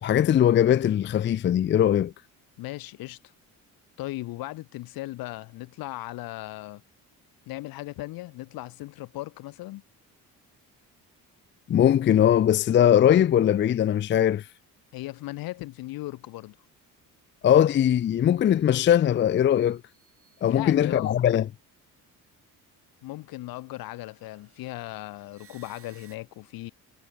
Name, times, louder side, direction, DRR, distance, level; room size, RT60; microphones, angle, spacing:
voice 1, 0.0-2.1 11.7-14.5 17.4-19.8 20.4-21.5, left 10 dB, 35° left, 0.4 m, -20 dB
voice 2, 2.6-3.2 4.0-6.8 7.5-9.8 14.9-16.6 20.5-21.2 23.0-26.7, left 18 dB, 90° left, 1.6 m, -37 dB
sound 1, 18.3-18.7 19.3-21.1 23.5-26.2, right 7 dB, 40° right, 5.5 m, -60 dB
cardioid pair, 125°, 34 cm